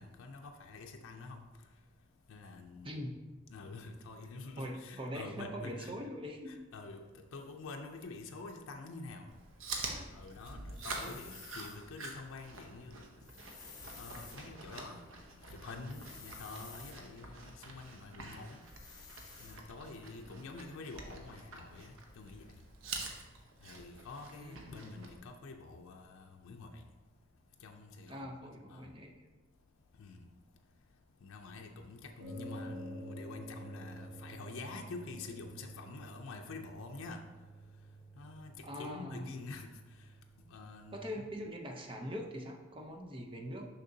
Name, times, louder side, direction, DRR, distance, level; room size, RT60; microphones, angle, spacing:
voice 1, 0.0-1.5 2.3-3.0 3.5-6.0 6.5-7.0 7.3-9.3 10.1-13.0 14.0-15.0 15.5-18.6 19.4-22.5 23.6-26.8 27.6-28.2 28.7-28.8 30.0-30.2 31.2-37.2 38.2-39.7 40.5-41.3, left 3 dB, 85° left, 3 dB, 0.5 m, -47 dB
voice 2, 2.8-3.2 4.6-6.6 9.8-10.1 11.0-11.2 24.3-24.9 28.1-29.1 38.6-39.3 40.9-43.7, equal, 25° right, 2 dB, 0.6 m, -42 dB
Chewing mastication, 9.3-25.2, right 3 dB, 75° right, 0.8 m, -47 dB
sound 1, 10.7-11.8 13.2-14.4 15.9-17.0 18.6-19.6, left 5 dB, 20° left, 0.8 m, -52 dB
sound 2, 32.2-41.3, right 1 dB, 60° right, 1.1 m, -49 dB
6.5 x 5.8 x 2.7 m, 1.3 s
head